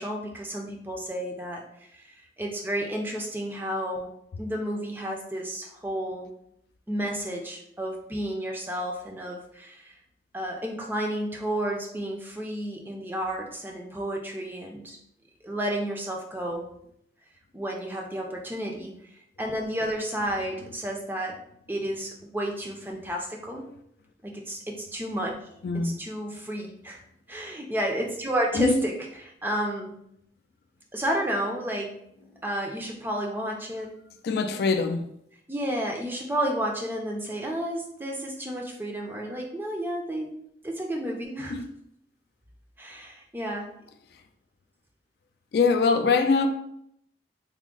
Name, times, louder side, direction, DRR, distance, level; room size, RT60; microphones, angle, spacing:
voice 1, 0.0-1.6 1.9-4.1 4.4-6.3 6.9-10.0 10.3-15.0 15.4-16.7 17.5-18.9 19.4-21.4 21.7-23.7 24.2-25.3 25.8-27.0 27.3-28.9 29.4-29.9 30.9-32.0 32.4-33.9 35.5-40.3 40.6-41.6 42.8-43.7, right 1 dB, 10° right, 0.4 m, -31 dB
voice 2, 25.6-25.9 28.5-28.8 34.2-35.0 41.5-41.7 45.5-46.5, left 4 dB, 60° left, 0.3 m, -23 dB
3.5 x 2.0 x 3.7 m
head